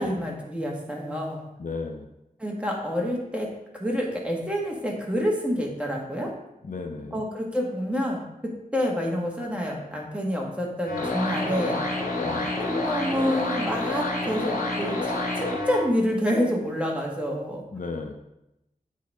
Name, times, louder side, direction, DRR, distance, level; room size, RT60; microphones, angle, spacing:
voice 1, 0.0-1.5 2.4-3.5 3.7-6.3 7.1-12.0 12.6-17.6, equal, 10° right, -2 dB, 1.8 m, -28 dB
voice 2, 1.6-2.1 6.6-7.2 12.2-12.5 17.7-18.1, left 4 dB, 65° left, 4 dB, 0.7 m, -34 dB
sound 1, 10.9-15.8, left 2 dB, 90° left, 2.6 m, -28 dB
8.3 x 4.0 x 4.9 m, 0.87 s
wide cardioid pair, 70°, 14 cm